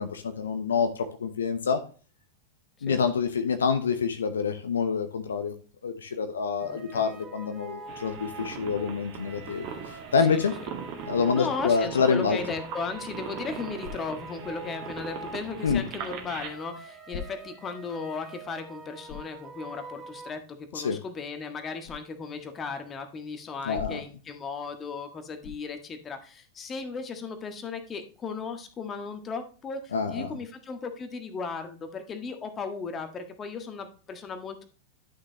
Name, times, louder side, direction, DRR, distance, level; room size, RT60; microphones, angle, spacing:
voice 1, 0.0-1.8 2.8-5.5 5.8-9.7 10.1-10.5 11.1-12.4 15.6-15.8 20.7-21.0 23.7-24.0 29.9-30.3, left 5 dB, 70° left, 8 dB, 0.9 m, -27 dB
voice 2, 6.6-7.0 10.2-10.4 11.3-34.6, left 4 dB, 25° left, 7 dB, 1.6 m, -36 dB
sound 1, 6.6-20.3, right 3 dB, 20° right, 2.1 m, -45 dB
sound 2, 7.9-16.5, right 7 dB, 45° right, 2.0 m, -41 dB
sound 3, 13.8-14.3 15.6-16.1 17.1-17.7 18.2-18.3 19.1-19.4 21.8-22.1 23.7-24.2 25.4-25.8, left 8 dB, 45° left, 2.4 m, -41 dB
11.5 x 6.5 x 3.0 m, 0.38 s
figure-of-eight pair, 90°, 0 cm